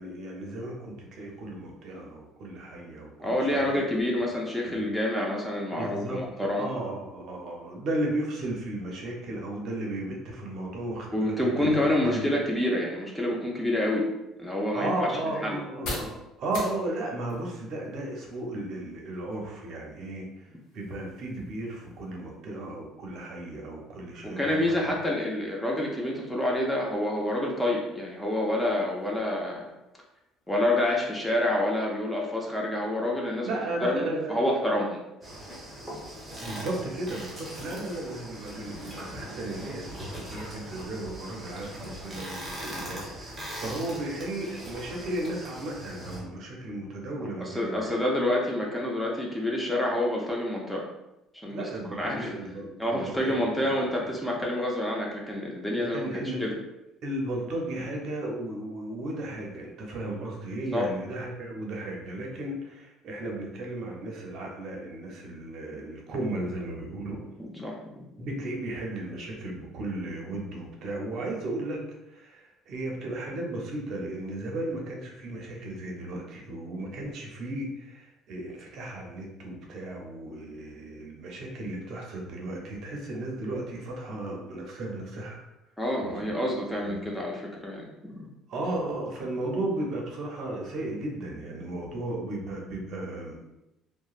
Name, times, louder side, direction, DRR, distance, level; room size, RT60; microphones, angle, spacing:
voice 1, 0.0-3.8 4.6-4.9 5.8-11.7 12.0-12.2 14.7-20.3 20.7-24.9 33.4-34.5 36.4-47.9 51.5-53.7 55.7-56.5 57.0-67.2 68.2-71.8 72.1-85.4 86.0-86.3 86.8-87.0 88.5-93.4, right 1 dB, 55° right, 0 dB, 0.6 m, -35 dB
voice 2, 3.2-6.7 11.1-14.1 14.4-15.1 15.4-15.6 24.2-29.6 30.5-33.6 33.8-35.0 38.7-38.8 47.4-50.9 51.4-51.7 52.0-52.3 52.8-56.1 56.4-56.6 60.7-60.9 67.4-68.0 85.8-88.3, left 1 dB, 5° left, -2 dB, 0.5 m, -28 dB
sound 1, 13.7-31.3, left 2 dB, 75° left, 0.8 m, -48 dB
sound 2, 35.2-46.2, equal, 15° right, 0.8 m, -40 dB
2.9 x 2.1 x 2.4 m, 0.92 s
cardioid pair, 135°, 0 cm